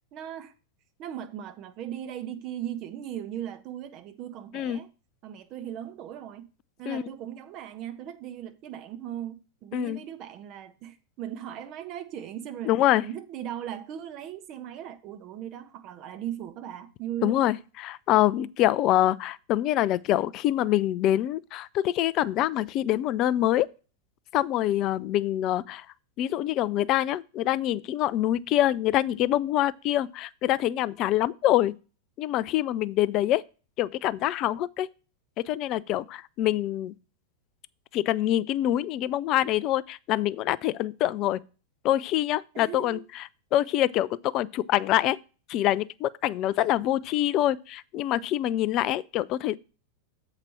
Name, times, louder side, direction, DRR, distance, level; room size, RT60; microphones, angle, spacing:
voice 1, 0.1-0.5 1.0-4.9 5.2-6.5 6.8-12.7 13.0-17.4 42.5-43.0, right 10 dB, 40° right, 1.0 m, -38 dB
voice 2, 12.7-13.0 17.2-23.7 24.3-25.9 26.2-31.7 32.2-33.4 33.8-34.9 35.4-36.9 37.9-41.4 41.8-45.2 45.5-49.6, left 13 dB, 40° left, 0.4 m, -25 dB
7.3 x 4.9 x 5.6 m
figure-of-eight pair, 90°, 0 cm